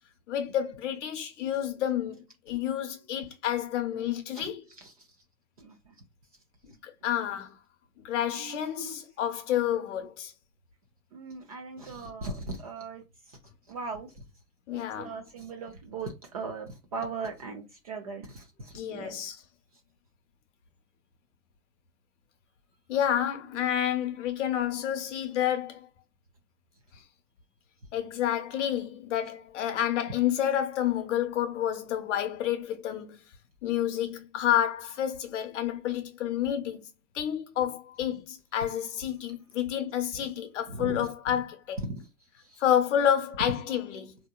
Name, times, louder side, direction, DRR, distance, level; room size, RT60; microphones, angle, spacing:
voice 1, 0.3-4.6 6.6-7.6 8.0-10.3 14.7-15.2 18.7-19.4 22.9-25.9 27.9-33.2 33.6-36.9 37.1-41.8 42.6-44.1, left 10 dB, 55° left, 0.8 m, -29 dB
voice 2, 4.8-5.1 5.6-5.9 8.3-9.0 11.1-13.0 13.3-13.4 13.7-14.1 14.7-19.2 40.7-41.0 41.9-42.1 42.4-42.6 43.5-43.6, right 3 dB, 30° right, 0.4 m, -39 dB
3.5 x 2.8 x 2.2 m
hypercardioid pair, 125°, 44 cm